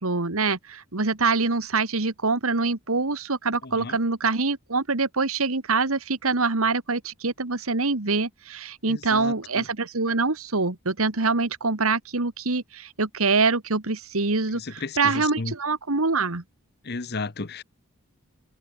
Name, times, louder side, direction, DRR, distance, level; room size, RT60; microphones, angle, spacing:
voice 1, 0.0-14.6 15.0-16.4, right 4 dB, 80° right, 1.8 m, -25 dB
voice 2, 3.6-4.0 8.8-9.7 14.5-15.5 16.8-17.6, left 3 dB, 50° left, 1.0 m, -34 dB
head